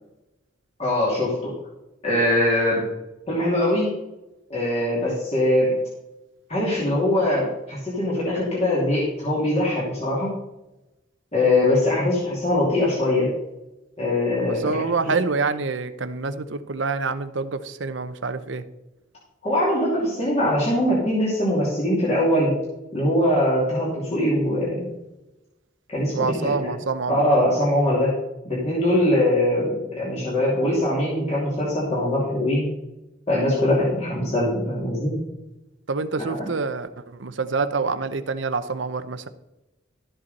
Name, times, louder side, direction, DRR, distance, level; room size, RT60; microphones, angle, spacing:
voice 1, 0.8-1.5 2.0-2.8 3.3-3.9 4.5-5.8 6.5-10.3 11.3-13.3 14.0-15.1 19.4-22.5 22.9-24.9 25.9-26.7 27.1-28.1 28.4-32.7 33.3-35.1 36.2-36.4, left 1 dB, 30° left, -6 dB, 2.7 m, -22 dB
voice 2, 14.4-18.6 26.1-27.2 35.9-39.3, right 4 dB, 65° right, 11 dB, 0.7 m, -27 dB
12.5 x 7.8 x 4.2 m, 0.97 s
head